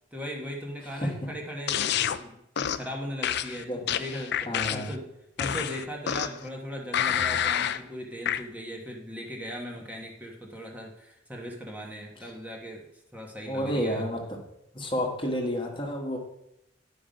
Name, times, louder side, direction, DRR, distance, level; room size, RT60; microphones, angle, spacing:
voice 1, 0.1-5.0 5.4-12.9 13.1-14.0, equal, 10° right, -1 dB, 1.2 m, -38 dB
sound 1, 1.7-2.2 2.6-2.9 3.2-5.0 5.4-6.5 6.9-7.8 8.3-8.4, left 9 dB, 60° left, 0.4 m, -28 dB
voice 2, 4.5-4.9 12.2-12.3 13.4-14.4 14.7-16.2, equal, 25° left, 1 dB, 1.4 m, -30 dB
10.5 x 5.3 x 5.2 m, 0.83 s
head